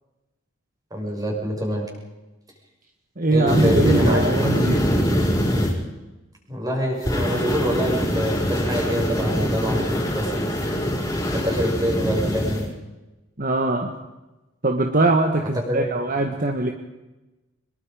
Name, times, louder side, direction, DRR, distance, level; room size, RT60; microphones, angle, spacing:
voice 1, 0.9-1.9 3.3-4.5 6.5-10.4 11.3-12.7 15.7-15.8, equal, 20° right, 0 dB, 6.2 m, -26 dB
voice 2, 3.2-4.8 13.4-13.9 14.6-16.7, right 2 dB, 45° right, 4 dB, 1.7 m, -21 dB
sound 1, 3.5-5.7 7.0-12.6, equal, 15° left, 5.6 m, -23 dB
24.5 x 22.0 x 5.2 m, 1.1 s
head